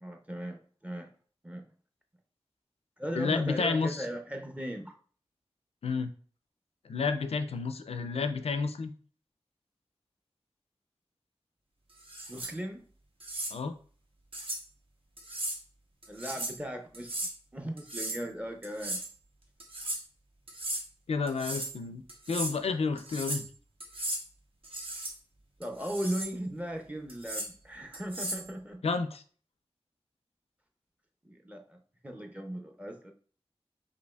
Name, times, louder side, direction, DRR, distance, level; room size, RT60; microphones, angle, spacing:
voice 1, 0.0-1.1 1.4-1.6 3.0-4.9 12.3-12.8 16.1-17.2 17.5-19.0 25.6-28.8 31.2-33.1, equal, 15° right, 4 dB, 0.5 m, -38 dB
voice 2, 3.2-4.1 5.8-6.1 6.8-8.9 13.5-13.8 21.1-22.0 22.3-23.5 28.8-29.2, left 4 dB, 80° left, 9 dB, 0.4 m, -30 dB
sound 1, 12.0-12.5 13.2-13.5 14.3-14.6 15.2-15.6 16.0-16.6 16.9-17.3 17.8-18.2 18.6-19.1 19.6-20.0 20.5-20.8 21.3-21.8 22.1-22.5 23.0-23.5 23.8-24.2 24.6-25.1 25.6-26.3 27.1-27.5 27.9-28.5, right 1 dB, 65° right, 0.8 m, -36 dB
5.1 x 2.7 x 2.3 m, 0.43 s
wide cardioid pair, 85°, 10 cm